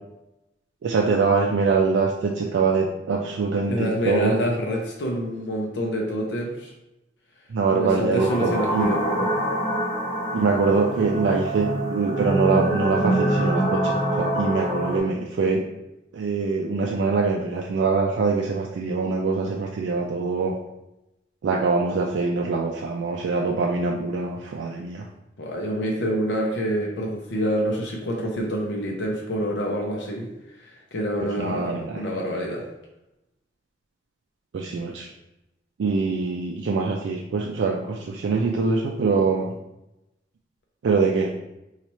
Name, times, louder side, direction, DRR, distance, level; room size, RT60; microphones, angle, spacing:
voice 1, 0.8-4.4 7.5-9.0 10.3-15.6 16.1-20.5 21.4-25.1 31.2-32.1 34.5-35.1 35.8-39.5 40.8-41.3, right 4 dB, 80° right, 0 dB, 0.3 m, -24 dB
voice 2, 3.7-6.7 7.7-9.3 25.4-30.3 30.6-32.7, equal, 70° left, -1 dB, 0.6 m, -27 dB
sound 1, 8.1-15.0, right 1 dB, 40° left, 1.2 m, -25 dB
2.9 x 2.4 x 4.1 m, 0.91 s
head